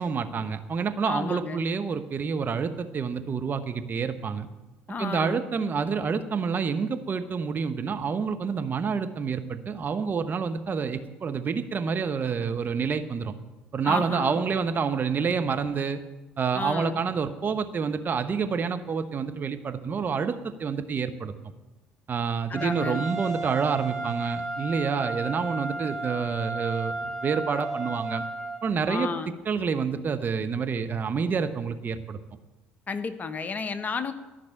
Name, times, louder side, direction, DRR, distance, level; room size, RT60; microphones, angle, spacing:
voice 1, 0.0-4.5 5.0-13.4 13.7-16.0 16.4-21.3 22.1-28.2 28.6-29.1 29.5-32.2, right 5 dB, 40° right, 8 dB, 1.0 m, -28 dB
voice 2, 1.0-1.6 4.9-5.4 13.8-14.4 16.5-17.0 22.5-23.0 28.9-29.3 32.9-34.1, left 4 dB, 35° left, 10 dB, 1.0 m, -32 dB
Trumpet, 22.5-28.6, right 2 dB, 5° left, 3.1 m, -33 dB
14.0 x 5.9 x 9.0 m, 1.1 s
hypercardioid pair, 55°, 5 cm